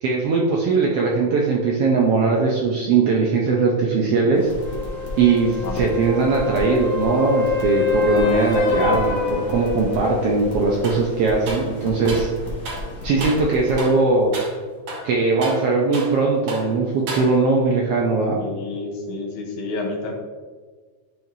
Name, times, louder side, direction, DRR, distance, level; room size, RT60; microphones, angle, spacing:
voice 1, 0.0-4.5 5.2-12.3 13.0-14.4 15.0-18.4, right 4 dB, 75° right, -2 dB, 1.4 m, -20 dB
sound 1, 4.3-13.8, left 1 dB, 40° left, 1.2 m, -33 dB
sound 2, 4.6-10.2 14.3-14.4, left 5 dB, 55° left, 1.4 m, -26 dB
sound 3, 10.8-11.1 11.5-12.3 12.6-12.9 13.2-13.5 13.8-14.0 14.3-14.6 14.9-16.2 16.5-16.7 17.1-17.6, right 2 dB, 55° right, 2.0 m, -33 dB
voice 2, 18.2-20.1, left 3 dB, 80° left, 0 dB, 2.5 m, -30 dB
10.5 x 4.6 x 2.7 m, 1.5 s
omnidirectional pair, 3.5 m